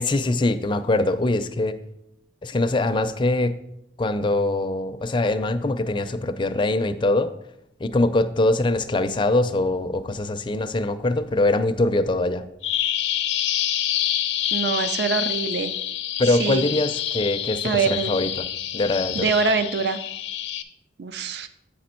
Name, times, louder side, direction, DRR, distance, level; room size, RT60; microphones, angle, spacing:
voice 1, 0.0-1.8 2.4-3.5 4.0-7.3 7.8-12.5 16.2-18.3 18.7-19.3, left 2 dB, 25° left, 10 dB, 0.4 m, -23 dB
Bird vocalization bird call bird song, 12.6-20.6, left 11 dB, 80° left, 0.6 m, -27 dB
voice 2, 14.5-15.7 16.3-16.6 17.6-18.1 19.1-20.0 21.0-21.5, right 5 dB, 65° right, 11 dB, 0.4 m, -24 dB
8.7 x 5.1 x 4.3 m, 0.79 s
head